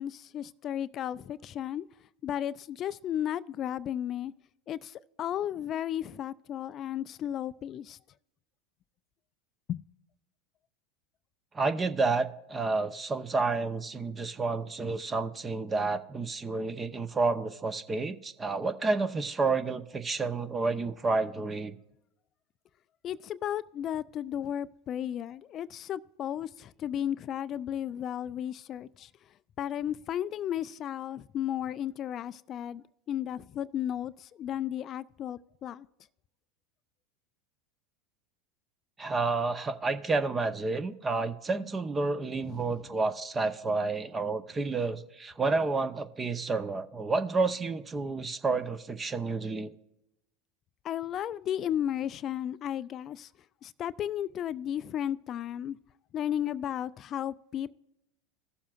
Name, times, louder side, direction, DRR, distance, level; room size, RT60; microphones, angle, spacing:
voice 1, 0.0-1.9 2.2-4.3 4.7-8.0 9.7-9.8 23.0-29.1 29.6-35.9 42.4-42.8 50.8-53.3 53.6-55.8 56.1-57.7, left 10 dB, 40° left, 0.3 m, -34 dB
voice 2, 11.5-21.8 39.0-49.7, right 3 dB, 20° right, 0.7 m, -30 dB
17.0 x 7.2 x 2.4 m
hypercardioid pair, 90°, 0 cm